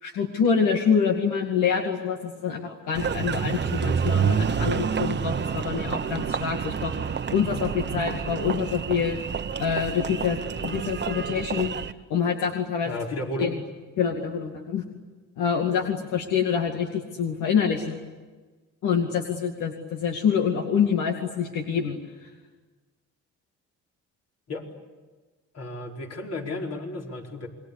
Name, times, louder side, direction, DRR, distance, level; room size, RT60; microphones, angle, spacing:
voice 1, 0.0-9.2 9.6-11.7 12.1-12.9 13.4-13.5 14.0-14.8 15.4-18.0 18.8-22.3, left 7 dB, 85° left, 3 dB, 2.3 m, -26 dB
Engine, 2.9-11.9, right 7 dB, 35° right, 1.0 m, -28 dB
voice 2, 12.8-13.5 24.5-24.6 25.5-27.5, left 2 dB, 55° left, 0 dB, 4.8 m, -33 dB
28.5 x 22.0 x 8.4 m, 1.3 s
cardioid pair, 90°, 30 cm